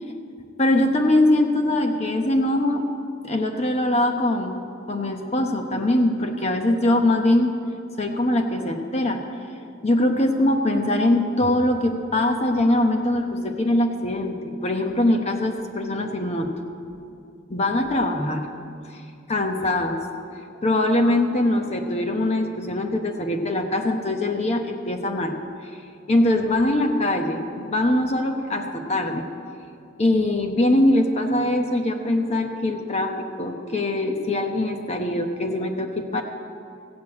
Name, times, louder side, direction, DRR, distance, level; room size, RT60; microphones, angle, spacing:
voice 1, 0.6-2.9 3.2-4.6 4.9-7.5 8.0-9.2 9.8-16.5 17.5-18.5 18.9-19.0 19.3-20.0 20.6-25.3 26.1-29.2 30.0-36.2, left 1 dB, 35° left, 4 dB, 0.9 m, -22 dB
15.0 x 6.8 x 8.5 m, 2.5 s
head